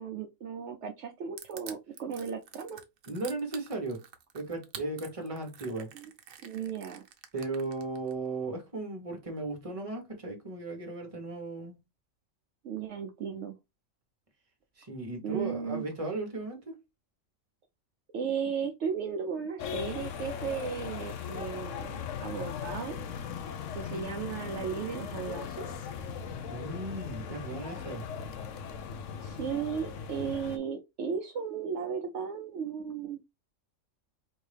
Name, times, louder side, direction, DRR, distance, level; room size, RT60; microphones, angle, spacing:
voice 1, 0.0-2.8 5.9-6.1 6.4-7.0 12.6-13.5 15.2-15.8 18.1-23.0 23.7-25.8 29.2-33.2, right 6 dB, 65° right, 0.9 m, -35 dB
Crushing, 1.4-8.1, right 8 dB, 90° right, 1.1 m, -47 dB
voice 2, 3.1-4.0 4.3-5.9 7.3-11.8 14.8-16.8 26.4-28.0, right 2 dB, 25° right, 1.2 m, -36 dB
sound 1, 19.6-30.6, left 7 dB, 70° left, 1.0 m, -38 dB
4.4 x 2.7 x 3.3 m
omnidirectional pair, 1.3 m